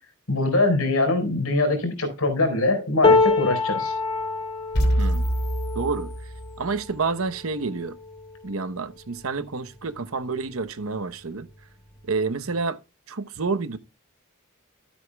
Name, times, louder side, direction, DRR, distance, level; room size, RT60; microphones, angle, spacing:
voice 1, 0.3-3.9, left 2 dB, 85° left, 4.4 m, -23 dB
sound 1, 3.0-9.2 9.8-10.0 10.3-11.0 12.0-12.1, left 3 dB, 25° left, 1.4 m, -26 dB
sound 2, 4.7-6.8, equal, 55° left, 2.9 m, -25 dB
voice 2, 5.0-5.3 5.7-6.1 6.6-8.0 8.4-11.5 12.1-12.8 13.1-13.8, right 4 dB, 70° right, 0.9 m, -28 dB
13.0 x 8.6 x 2.3 m
head